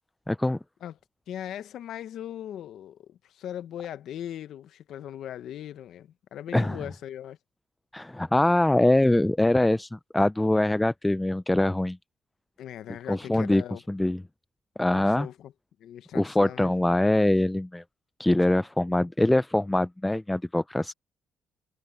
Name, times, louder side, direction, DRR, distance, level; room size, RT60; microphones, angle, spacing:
voice 1, 0.3-0.6 6.5-6.8 7.9-12.0 13.1-13.6 13.9-14.2 14.8-15.3 16.1-17.8 18.2-20.9, left 1 dB, 10° left, 0.4 m, -23 dB
voice 2, 1.3-7.4 12.6-13.8 14.9-15.5 15.8-16.7, left 11 dB, 75° left, 1.1 m, -39 dB
cardioid pair, 90°, 0 cm